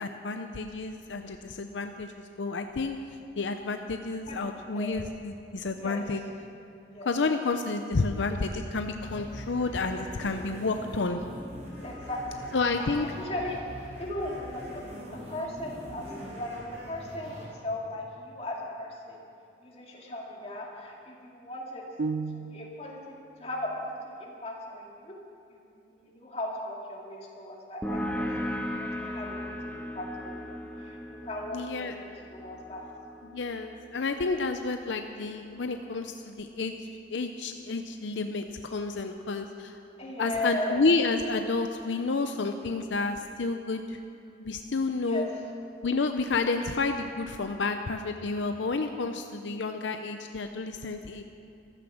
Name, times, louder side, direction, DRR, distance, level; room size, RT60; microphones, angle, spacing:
voice 1, 0.0-3.0 3.4-6.2 7.0-11.2 12.5-13.1 31.5-31.9 33.2-38.4 38.7-39.8 40.2-44.0 44.4-45.3 45.8-51.2, left 3 dB, 75° left, 6 dB, 0.6 m, -30 dB
sound 1, 9.0-17.4, equal, 40° right, 4.6 m, -43 dB
voice 2, 11.7-16.1 16.3-19.2 19.6-21.9 22.3-25.1 25.5-29.5 29.7-32.9 40.0-40.9 45.0-45.2, left 1 dB, 35° left, -2 dB, 2.3 m, -38 dB
sound 2, 22.0-23.0, right 4 dB, 65° right, 0.4 m, -33 dB
sound 3, 27.8-35.1, left 1 dB, 5° left, 1.0 m, -37 dB
14.5 x 13.5 x 6.4 m, 2.7 s
head